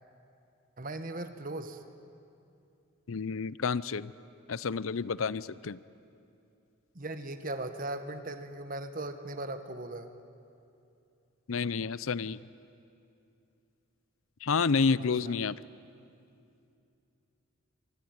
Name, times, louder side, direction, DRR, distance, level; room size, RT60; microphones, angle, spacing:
voice 1, 0.8-1.8 6.9-10.1 15.0-15.3, right 2 dB, 40° right, 9 dB, 1.5 m, -38 dB
voice 2, 3.1-4.1 4.5-5.8 11.5-12.4 14.4-15.6, left 5 dB, 75° left, 18 dB, 0.6 m, -29 dB
25.0 x 25.0 x 9.6 m, 2.6 s
head